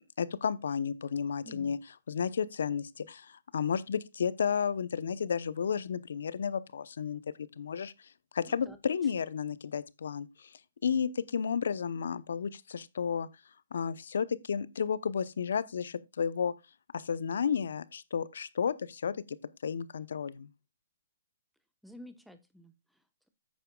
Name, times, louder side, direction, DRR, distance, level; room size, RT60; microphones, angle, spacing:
voice 1, 0.2-1.8 2.1-7.9 8.3-10.5 10.8-13.3 13.7-16.5 16.9-19.1 19.6-20.5, left 7 dB, 70° left, 0.8 m, -32 dB
voice 2, 1.4-1.7 8.5-8.8 9.0-9.1 21.8-23.3, left 1 dB, ahead, 1.0 m, -52 dB
11.5 x 8.9 x 2.3 m
hypercardioid pair, 125°, 0 cm